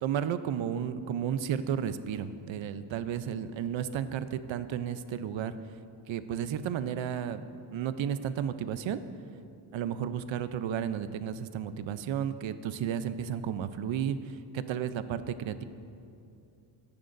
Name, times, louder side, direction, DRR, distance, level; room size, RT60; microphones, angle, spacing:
voice 1, 0.0-5.6 6.1-7.4 7.7-9.0 9.7-15.6, right 9 dB, 80° right, 12 dB, 0.7 m, -33 dB
23.5 x 10.5 x 2.6 m, 2.6 s
cardioid pair, 120°, 46 cm